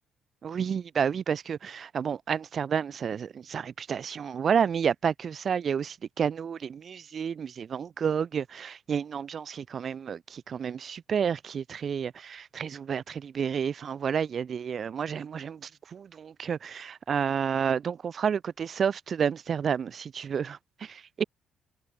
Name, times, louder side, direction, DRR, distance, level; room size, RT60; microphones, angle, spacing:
voice 1, 0.4-21.2, right 7 dB, 50° right, 2.2 m, -30 dB
cardioid pair, 90°, 0 cm